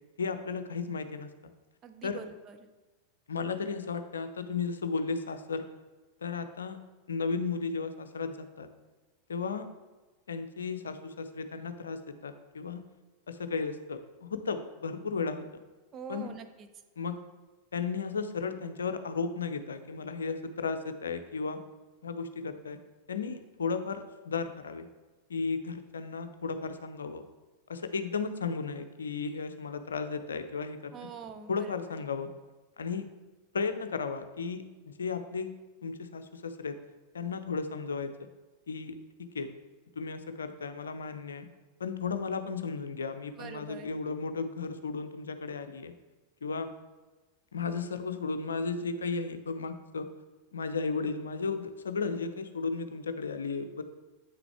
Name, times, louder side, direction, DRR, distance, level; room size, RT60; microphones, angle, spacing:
voice 1, 0.2-1.3 2.0-2.2 3.3-5.7 6.2-6.8 7.1-8.7 9.3-9.7 10.3-12.9 13.3-15.4 16.1-16.3 17.0-17.2 17.7-21.6 22.0-22.8 23.1-24.9 25.3-27.2 27.7-30.9 31.5-32.3 32.8-33.1 33.5-35.5 35.8-36.8 37.1-38.1 38.7-39.5 40.0-41.5 41.8-45.9 46.4-46.7 47.5-50.1 50.5-53.8, left 4 dB, 70° left, 9 dB, 0.6 m, -34 dB
voice 2, 1.8-2.6 15.9-16.7 30.9-32.0 43.4-43.9, right 6 dB, 30° right, 7 dB, 0.7 m, -44 dB
8.5 x 5.9 x 3.4 m, 1.2 s
figure-of-eight pair, 90°, 0 cm